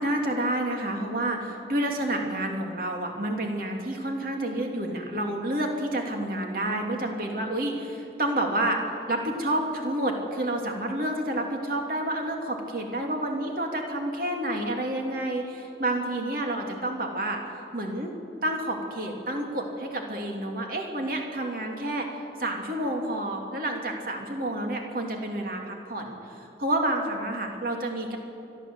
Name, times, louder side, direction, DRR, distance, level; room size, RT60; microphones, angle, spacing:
voice 1, 0.0-8.8 9.1-17.4 17.7-18.1 18.4-28.2, right 1 dB, 50° right, 2 dB, 2.8 m, -29 dB
30.0 x 12.5 x 8.0 m, 2.8 s
head